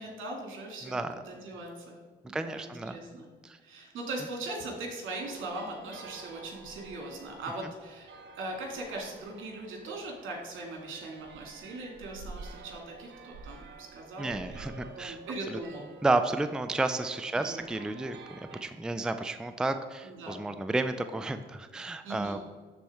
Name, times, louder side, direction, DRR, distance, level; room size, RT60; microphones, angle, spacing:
voice 1, 0.0-2.0 2.3-3.3 3.6-14.7 15.0-15.8 17.3-17.7 20.0-20.4 22.0-22.4, right 2 dB, 80° right, 0 dB, 2.1 m, -40 dB
voice 2, 0.8-1.1 2.3-3.0 3.4-3.6 14.2-15.2 15.5-15.6 16.0-22.4, right 2 dB, 5° right, 9 dB, 0.4 m, -31 dB
sound 1, 5.2-18.6, right 5 dB, 60° right, 0.8 m, -49 dB
11.5 x 4.3 x 3.5 m, 1.5 s
cardioid pair, 90°, 20 cm